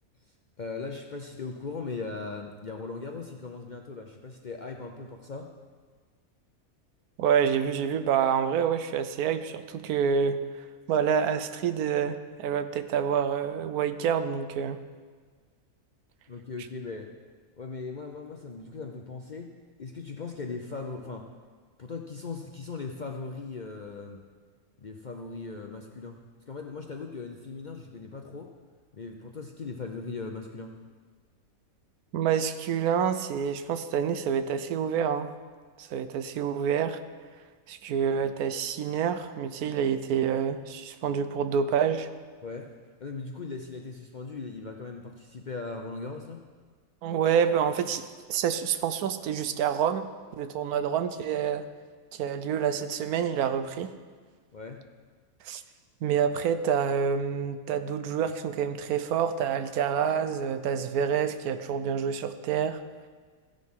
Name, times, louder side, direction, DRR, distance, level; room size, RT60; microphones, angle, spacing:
voice 1, 0.6-5.5 16.3-17.1 17.6-19.5 19.8-21.3 21.8-24.2 24.8-28.5 28.9-30.7 42.4-42.7 43.0-46.4 54.5-54.8, left 4 dB, 50° left, 3 dB, 0.5 m, -39 dB
voice 2, 7.2-10.4 10.9-14.8 32.1-35.3 35.8-37.0 37.7-42.1 47.0-48.0 48.3-50.1 50.4-51.7 52.1-53.9 55.4-55.6 56.0-62.8, right 7 dB, 85° right, 11 dB, 1.2 m, -27 dB
15.0 x 10.0 x 3.7 m, 1.5 s
omnidirectional pair, 1.5 m